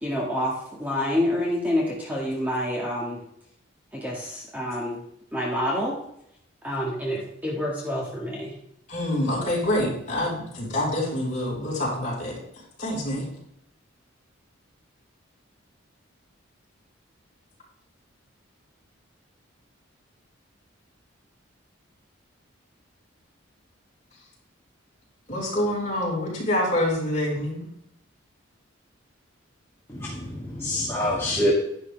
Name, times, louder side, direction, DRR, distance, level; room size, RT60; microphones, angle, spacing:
voice 1, 0.0-3.2 3.9-5.0 5.3-6.0 6.6-8.5, left 1 dB, 10° right, -4 dB, 1.9 m, -27 dB
voice 2, 8.9-12.4 12.8-13.3 25.3-27.7, left 1 dB, 35° left, -4 dB, 4.7 m, -26 dB
voice 3, 30.0-31.5, left 1 dB, 15° left, -8 dB, 2.0 m, -26 dB
11.0 x 11.0 x 3.4 m, 0.74 s
head